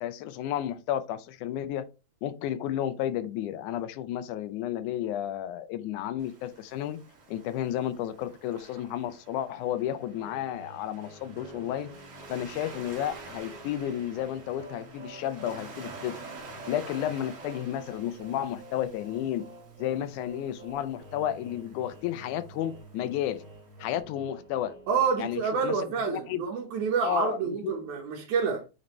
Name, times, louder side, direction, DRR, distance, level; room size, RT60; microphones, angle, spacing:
voice 1, 0.0-1.8 2.2-7.0 7.3-11.9 12.3-16.2 16.7-19.5 19.8-23.4 23.8-24.8 25.2-25.8 26.1-26.4 27.0-27.7, left 11 dB, 90° left, 2.2 m, -32 dB
Waves surf, 6.2-24.0, right 3 dB, 55° right, 2.8 m, -49 dB
sound 1, 10.2-25.7, right 2 dB, 35° right, 2.8 m, -49 dB
voice 2, 24.9-28.7, right 6 dB, 80° right, 2.6 m, -28 dB
8.6 x 4.0 x 3.1 m
omnidirectional pair, 3.4 m